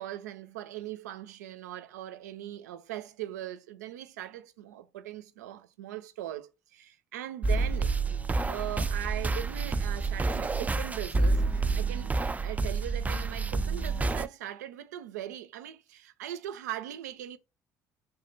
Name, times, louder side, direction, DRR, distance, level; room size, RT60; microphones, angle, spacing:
voice 1, 0.0-12.1 12.4-17.4, right 12 dB, 90° right, 0.4 m, -40 dB
sound 1, 7.4-14.3, right 3 dB, 20° right, 0.3 m, -28 dB
3.5 x 2.1 x 3.8 m
hypercardioid pair, 60°, 9 cm